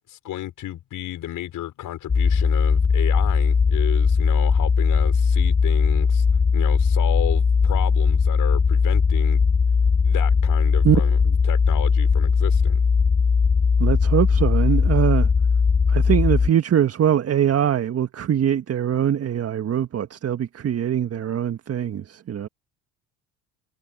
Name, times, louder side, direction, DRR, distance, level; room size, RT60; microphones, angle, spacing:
voice 1, 0.0-6.2 6.5-9.4 10.0-11.1 11.5-12.8, left 13 dB, 55° left, 5.9 m, -32 dB
sound 1, 2.1-16.5, left 5 dB, 10° left, 0.4 m, -19 dB
voice 2, 10.8-11.3 13.8-15.3 15.9-22.5, right 10 dB, 40° right, 1.7 m, -22 dB
hypercardioid pair, 75°, 38 cm